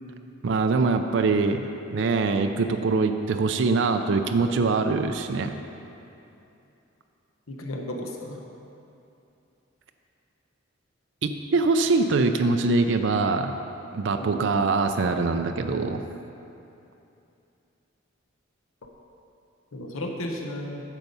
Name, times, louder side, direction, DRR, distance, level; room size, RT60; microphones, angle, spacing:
voice 1, 0.4-1.6 1.9-5.5 11.2-13.6 13.9-16.0, right 3 dB, 65° right, 6 dB, 0.4 m, -23 dB
voice 2, 7.5-8.4 14.2-14.4 19.7-20.8, left 1 dB, 90° left, 1 dB, 0.9 m, -34 dB
9.2 x 6.7 x 5.4 m, 2.8 s
head